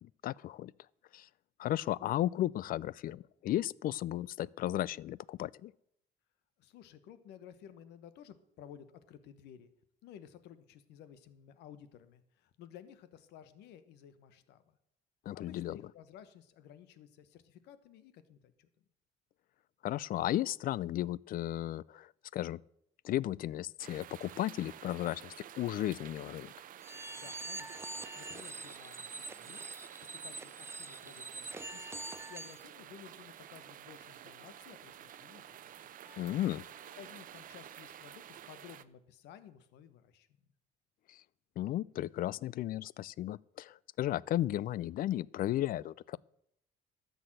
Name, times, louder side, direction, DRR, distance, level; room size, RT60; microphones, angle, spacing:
voice 1, 0.0-0.7 1.1-1.3 1.6-5.7 15.3-15.8 19.8-22.6 23.0-26.5 36.2-36.6 41.1-41.2 41.6-46.2, left 13 dB, 55° left, 0.4 m, -35 dB
voice 2, 6.6-9.7 10.0-14.8 15.3-18.8 27.1-27.7 28.2-29.7 30.1-32.0 32.3-35.6 37.0-40.3, left 9 dB, 85° left, 1.2 m, -55 dB
sound 1, 23.8-38.8, right 11 dB, 55° right, 0.7 m, -51 dB
sound 2, 26.8-32.6, right 3 dB, 15° right, 0.6 m, -45 dB
sound 3, 36.1-38.2, left 12 dB, 35° left, 1.4 m, -66 dB
12.5 x 7.0 x 7.7 m
cardioid pair, 110°, 17 cm